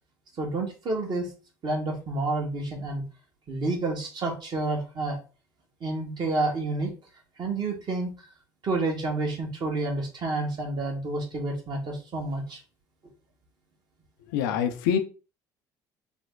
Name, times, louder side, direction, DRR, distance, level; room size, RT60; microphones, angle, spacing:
voice 1, 0.4-1.3 1.6-3.0 3.5-5.2 5.8-6.9 7.4-8.1 8.6-12.6, right 2 dB, 45° right, 1 dB, 1.4 m, -29 dB
voice 2, 14.3-15.0, left 8 dB, 85° left, 8 dB, 0.5 m, -25 dB
3.3 x 2.1 x 3.6 m, 0.34 s
hypercardioid pair, 70°, 10 cm